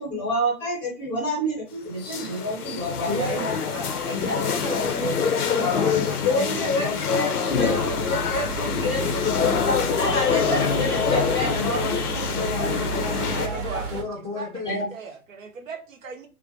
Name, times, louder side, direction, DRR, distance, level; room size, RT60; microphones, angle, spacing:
voice 1, 0.0-3.5 4.3-4.4 6.2-11.8 12.6-12.7 14.6-14.9, left 1 dB, 10° left, 0.6 m, -28 dB
sound 1, 2.0-13.5, left 6 dB, 85° left, 0.6 m, -26 dB
voice 2, 3.1-7.0 7.5-8.0 8.8-9.4 10.1-14.8, left 2 dB, 20° right, 0.3 m, -32 dB
sound 2, 7.5-14.0, right 6 dB, 85° right, 1.0 m, -33 dB
voice 3, 13.0-14.5 14.9-16.3, right 4 dB, 60° right, 0.7 m, -38 dB
2.4 x 2.1 x 2.6 m
figure-of-eight pair, 125°, 45 cm